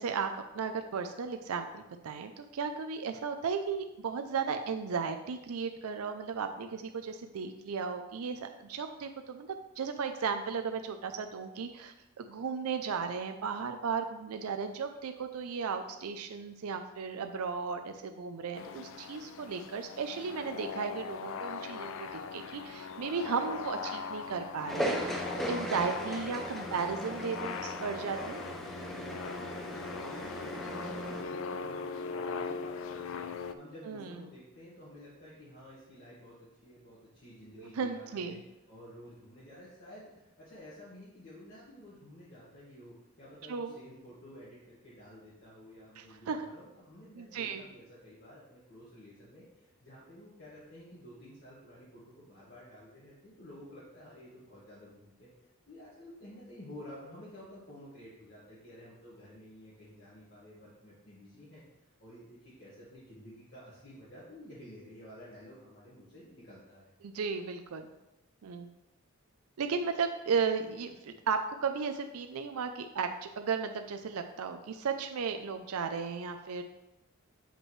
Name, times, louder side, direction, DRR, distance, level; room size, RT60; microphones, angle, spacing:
voice 1, 0.0-28.4 33.9-34.2 37.6-38.4 43.5-43.8 46.0-46.5 47.1-47.6 67.0-67.9 68.4-68.7 69.6-76.6, right 5 dB, 80° right, 7 dB, 0.4 m, -35 dB
sound 1, 18.5-33.5, left 5 dB, 60° left, 0.3 m, -40 dB
sound 2, 24.7-31.2, right 1 dB, ahead, 0.5 m, -37 dB
voice 2, 30.0-38.4 38.7-55.3 55.7-61.6 62.0-66.9, left 1 dB, 45° left, -9 dB, 1.7 m, -51 dB
7.6 x 5.2 x 3.1 m, 0.95 s
head